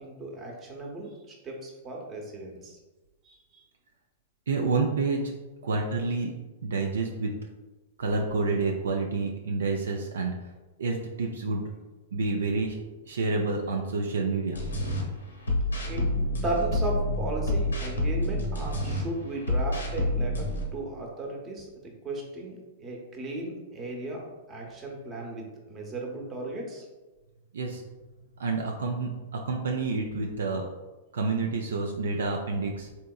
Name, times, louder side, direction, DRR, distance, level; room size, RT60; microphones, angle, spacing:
voice 1, 0.0-2.8 3.2-3.6 15.9-16.1 16.4-26.9, right 2 dB, 25° right, 0 dB, 0.8 m, -36 dB
voice 2, 4.5-5.3 5.6-6.3 6.6-7.3 8.0-10.4 10.8-11.6 12.1-12.8 13.1-14.6 27.5-27.8 28.4-30.7 31.1-32.9, right 3 dB, 75° right, 2 dB, 0.3 m, -28 dB
sound 1, 14.5-15.0 15.5-19.0 19.4-20.6, left 1 dB, 85° left, 0.7 m, -28 dB
3.5 x 2.8 x 2.3 m, 1.2 s
hypercardioid pair, 105°, 0 cm